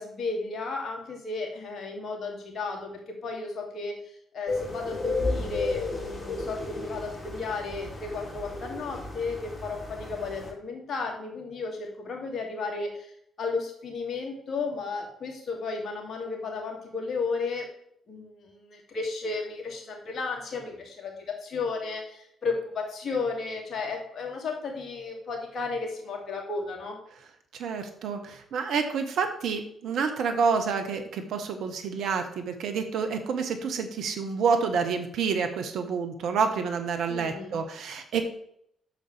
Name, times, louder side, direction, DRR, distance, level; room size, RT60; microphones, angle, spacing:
voice 1, 0.0-13.1 13.4-17.6 18.1-27.0 37.1-37.6, left 4 dB, 50° left, 1 dB, 2.6 m, -34 dB
sound 1, 4.5-10.5, left 3 dB, 35° left, 3.5 m, -33 dB
voice 2, 27.5-38.2, right 5 dB, 65° right, 6 dB, 1.2 m, -28 dB
9.3 x 7.0 x 3.5 m, 0.70 s
hypercardioid pair, 45°, 0 cm